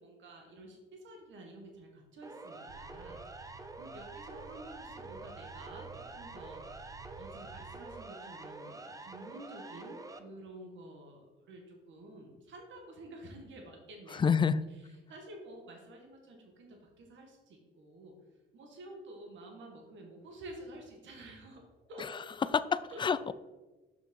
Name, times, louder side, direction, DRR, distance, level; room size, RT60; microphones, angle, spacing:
voice 1, 0.0-6.7 7.2-14.3 15.1-18.1 18.5-21.6 21.9-22.1 22.4-22.5 22.9-23.0, right 1 dB, 70° right, 2 dB, 1.9 m, -50 dB
Siren, 2.2-10.2, right 2 dB, 15° right, 0.7 m, -47 dB
sound 1, 2.7-7.8, right 6 dB, 85° right, 1.0 m, -53 dB
voice 2, 14.1-14.6 22.5-23.3, left 6 dB, 25° left, 15 dB, 0.4 m, -28 dB
6.0 x 6.0 x 5.5 m, 1.2 s
cardioid pair, 90°, 20 cm